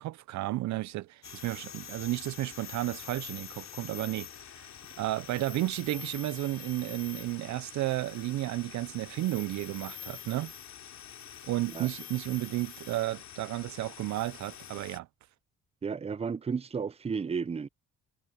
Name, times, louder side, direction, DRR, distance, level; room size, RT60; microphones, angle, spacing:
voice 1, 0.0-4.3 4.5-4.7 5.0-10.5 11.4-15.1, right 16 dB, 70° right, 0.4 m, -33 dB
sound 1, 1.2-15.0, left 9 dB, 65° left, 2.8 m, -46 dB
voice 2, 15.8-17.7, right 5 dB, 20° right, 0.6 m, -33 dB
cardioid pair, 90°, 30 cm